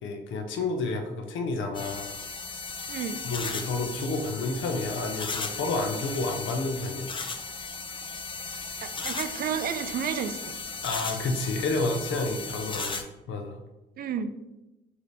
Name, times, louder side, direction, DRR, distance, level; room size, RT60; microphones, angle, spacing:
voice 1, 0.0-2.1 3.2-7.1 10.8-13.0 13.3-13.6, left 3 dB, 75° left, 4 dB, 0.7 m, -30 dB
sound 1, 1.7-13.0, left 4 dB, 25° left, 0.4 m, -36 dB
voice 2, 2.9-3.3 8.8-10.5 14.0-14.4, right 7 dB, 50° right, 11 dB, 0.4 m, -31 dB
3.3 x 2.8 x 4.1 m, 0.97 s
cardioid pair, 90°, 20 cm